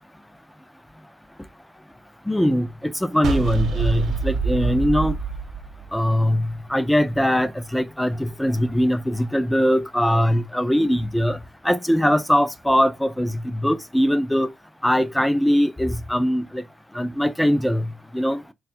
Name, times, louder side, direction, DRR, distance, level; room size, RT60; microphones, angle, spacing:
voice 1, 2.3-5.1 5.9-11.4 11.6-14.5 14.8-16.6 17.0-17.9 18.1-18.4, equal, 5° left, 0.4 m, -21 dB
sound 1, 3.2-6.5, right 5 dB, 70° right, 0.9 m, -25 dB
3.4 x 2.3 x 4.3 m
cardioid pair, 90°, 0 cm